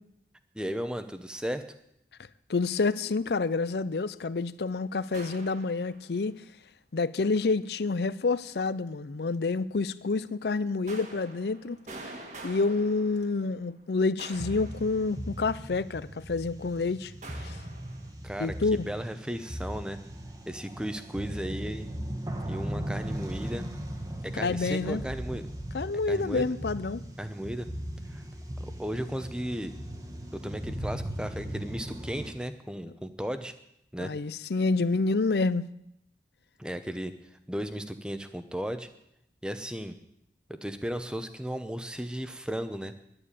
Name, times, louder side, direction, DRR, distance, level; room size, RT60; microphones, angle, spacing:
voice 1, 0.5-1.6 18.2-20.0 20.5-21.9 22.5-23.7 24.2-25.4 26.1-26.5 27.2-27.7 28.1-28.2 28.8-29.7 30.3-33.5 33.9-34.1 36.6-37.1 37.5-38.9 39.4-40.0 40.5-42.9, equal, 5° right, 0.8 m, -35 dB
voice 2, 2.5-6.4 6.9-11.8 12.0-12.1 12.4-17.1 17.4-17.6 18.4-18.9 24.3-25.0 25.7-27.0 34.0-35.6, left 3 dB, 65° left, 0.5 m, -28 dB
sound 1, 5.1-6.2 10.9-13.7 14.2-15.5 17.2-18.1, right 2 dB, 40° right, 1.7 m, -46 dB
sound 2, 14.3-32.3, right 1 dB, 20° right, 1.2 m, -38 dB
11.0 x 9.9 x 8.4 m
head